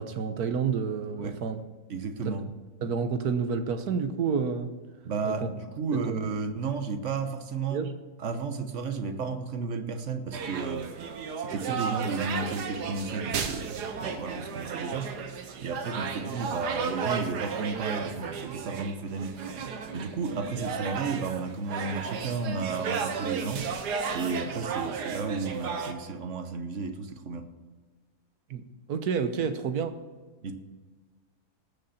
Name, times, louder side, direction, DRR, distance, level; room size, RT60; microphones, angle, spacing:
voice 1, 0.0-1.6 2.2-2.5 2.8-4.7 5.2-5.5 5.9-6.3 7.7-7.9 28.5-28.6 28.9-30.0, right 6 dB, 70° right, 9 dB, 1.5 m, -29 dB
voice 2, 1.9-2.5 5.0-7.9 8.2-10.9 11.4-15.1 15.6-19.5 19.9-23.7 24.1-27.5 30.4-30.7, right 4 dB, 50° right, 8 dB, 1.3 m, -33 dB
sound 1, 10.3-25.9, right 6 dB, 90° right, 1.6 m, -34 dB
19.0 x 6.8 x 4.2 m, 1.4 s
omnidirectional pair, 1.7 m